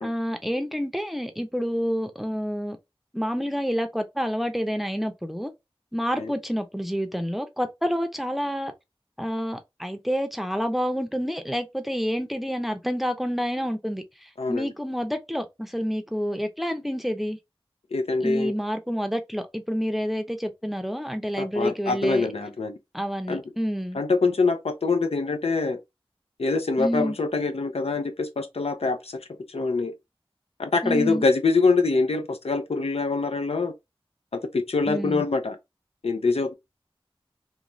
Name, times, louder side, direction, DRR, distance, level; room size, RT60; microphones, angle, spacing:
voice 1, 0.0-2.8 3.1-5.5 5.9-8.7 9.2-17.4 18.2-22.3 22.9-24.0 26.8-27.2 30.8-31.2 34.9-35.2, equal, ahead, 0.5 m, -28 dB
voice 2, 14.4-14.7 17.9-18.5 21.4-22.8 23.3-23.4 23.9-25.8 26.4-29.9 30.6-33.7 34.5-35.6 36.0-36.5, left 3 dB, 85° left, 0.5 m, -24 dB
3.1 x 2.2 x 2.6 m
wide cardioid pair, 40°, 10 cm